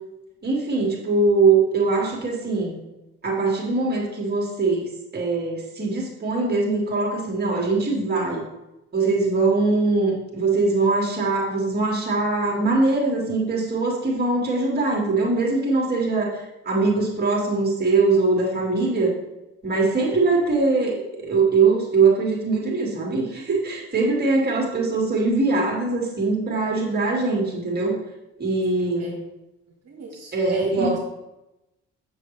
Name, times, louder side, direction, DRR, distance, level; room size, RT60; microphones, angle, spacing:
voice 1, 0.4-2.8 3.2-8.4 8.9-19.1 19.6-20.9 21.2-27.9 28.4-29.1 30.3-30.9, right 3 dB, 30° right, -2 dB, 2.3 m, -22 dB
voice 2, 28.8-29.2 29.9-31.0, right 3 dB, 60° right, -3 dB, 1.6 m, -28 dB
6.8 x 6.3 x 3.3 m, 0.96 s
cardioid pair, 90°, 30 cm